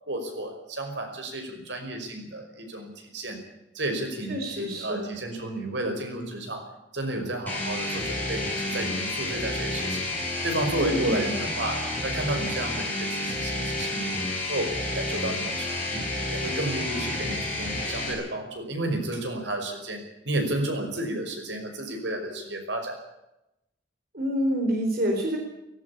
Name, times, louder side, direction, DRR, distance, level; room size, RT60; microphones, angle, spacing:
voice 1, 0.0-3.4 3.7-6.7 6.9-10.0 10.4-14.2 14.5-16.0 16.3-23.0, right 1 dB, 80° right, 5 dB, 5.5 m, -32 dB
voice 2, 4.3-5.1 10.8-11.3 24.1-25.4, equal, 55° right, 2 dB, 4.0 m, -27 dB
sound 1, 7.5-18.1, left 1 dB, 10° left, 7.8 m, -30 dB
18.0 x 18.0 x 8.6 m, 0.88 s
head